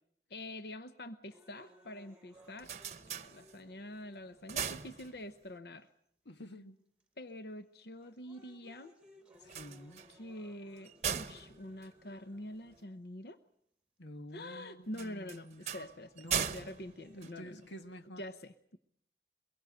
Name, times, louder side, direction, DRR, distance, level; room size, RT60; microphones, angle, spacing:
voice 1, 0.3-5.9 7.2-8.9 10.1-13.4 14.3-17.6 18.2-18.8, left 1 dB, 60° left, 10 dB, 0.9 m, -46 dB
sound 1, 1.3-5.3 6.1-6.2 7.0-7.3 7.8-13.3 14.3-14.4 15.8-17.3, equal, 5° right, 1.4 m, -63 dB
sound 2, 2.3-3.9 4.3-5.6 9.4-12.8 14.9-18.0, right 8 dB, 40° right, 0.9 m, -40 dB
voice 2, 6.2-6.8 9.4-10.0 14.0-15.7 16.2-16.5 17.1-18.2, equal, 85° left, 8 dB, 1.5 m, -49 dB
23.5 x 22.0 x 7.8 m, 0.71 s
head